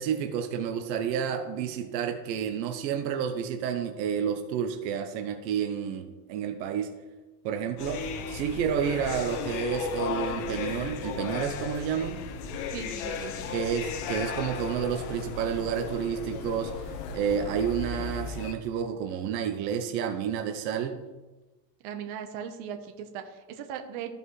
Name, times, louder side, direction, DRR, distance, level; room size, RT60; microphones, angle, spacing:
voice 1, 0.0-6.9 7.4-12.2 13.5-16.9 17.1-21.0, right 8 dB, 90° right, 6 dB, 1.0 m, -30 dB
sound 1, 7.8-18.5, left 6 dB, 60° left, 1.0 m, -35 dB
voice 2, 12.7-13.6 21.8-24.1, right 8 dB, 65° right, 6 dB, 1.2 m, -38 dB
14.5 x 5.3 x 3.2 m, 1.2 s
supercardioid pair, 155°, 49 cm